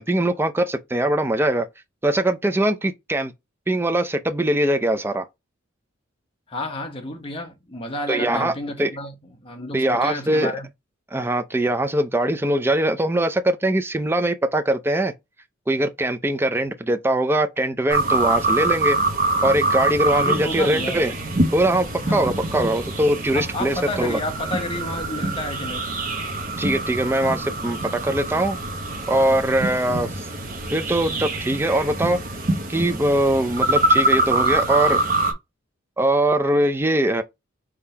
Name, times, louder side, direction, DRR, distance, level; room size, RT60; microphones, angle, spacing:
voice 1, 0.0-1.7 2.0-3.3 3.7-5.3 8.1-8.5 8.8-8.9 9.7-10.5 11.1-15.1 15.7-19.0 19.4-21.1 21.5-24.2 26.6-28.6 29.1-30.3 30.7-32.2 32.7-35.0 36.0-37.2, right 1 dB, 10° right, 0.5 m, -21 dB
voice 2, 6.5-10.7 20.1-21.0 22.0-22.3 23.3-26.0, left 1 dB, 25° left, 1.1 m, -31 dB
sound 1, 17.9-35.3, right 2 dB, 45° right, 1.1 m, -24 dB
4.7 x 3.7 x 2.8 m
head